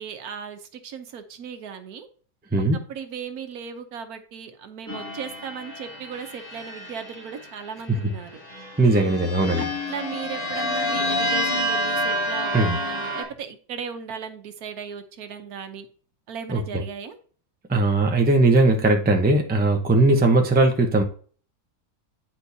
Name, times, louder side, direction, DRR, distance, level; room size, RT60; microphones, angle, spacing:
voice 1, 0.0-2.1 2.7-8.4 9.6-15.9 16.3-17.2, right 7 dB, 75° right, 8 dB, 1.3 m, -37 dB
sound 1, 4.9-7.6 8.4-13.2, left 1 dB, 10° left, 2.5 m, -28 dB
voice 2, 8.8-9.7 12.5-12.8 16.5-16.6 17.7-21.0, right 2 dB, 10° right, 4 dB, 0.5 m, -19 dB
9.8 x 4.4 x 2.7 m, 0.43 s
omnidirectional pair, 1.6 m